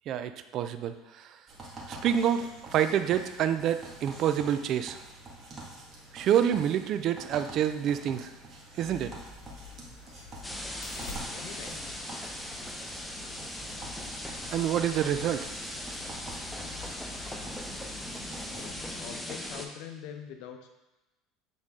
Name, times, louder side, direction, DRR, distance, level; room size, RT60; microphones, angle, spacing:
voice 1, 0.1-1.4 1.9-5.0 6.1-8.3 8.8-9.1 14.5-15.5, right 9 dB, 50° right, 10 dB, 0.4 m, -27 dB
sound 1, 1.5-18.7, right 2 dB, 35° right, 1.6 m, -47 dB
sound 2, 8.9-19.2, left 3 dB, 90° left, 1.1 m, -48 dB
sound 3, 10.4-19.7, left 1 dB, 5° left, 0.6 m, -39 dB
voice 2, 11.3-12.0 18.4-20.7, left 8 dB, 70° left, 5 dB, 0.7 m, -44 dB
8.1 x 3.9 x 3.7 m, 1.0 s
supercardioid pair, 120°, 0 cm